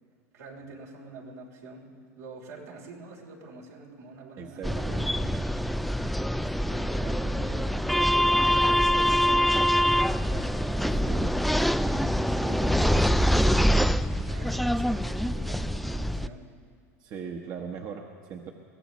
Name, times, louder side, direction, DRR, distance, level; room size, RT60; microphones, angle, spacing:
voice 1, 0.3-5.4 6.6-11.1 12.1-16.5, right 2 dB, 85° right, -2 dB, 3.2 m, -46 dB
voice 2, 4.4-5.0 11.1-11.4 12.6-12.7 17.0-18.5, right 6 dB, 50° right, 2 dB, 1.1 m, -39 dB
sound 1, 4.6-16.3, equal, ahead, 0.4 m, -24 dB
22.0 x 16.0 x 3.1 m, 2.2 s
hypercardioid pair, 90°, 8 cm